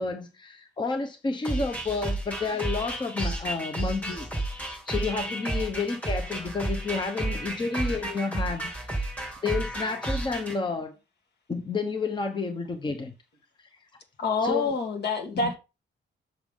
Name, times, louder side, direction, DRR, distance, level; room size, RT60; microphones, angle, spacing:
voice 1, 0.0-4.3 4.6-9.1 9.4-10.9 11.5-13.1 14.4-14.7 15.4-15.6, left 4 dB, 25° left, 0.9 m, -30 dB
sound 1, 1.4-10.6, right 2 dB, 5° left, 2.6 m, -32 dB
voice 2, 14.2-15.6, left 4 dB, 60° left, 2.1 m, -27 dB
7.4 x 6.8 x 3.7 m
wide cardioid pair, 165°, 19 cm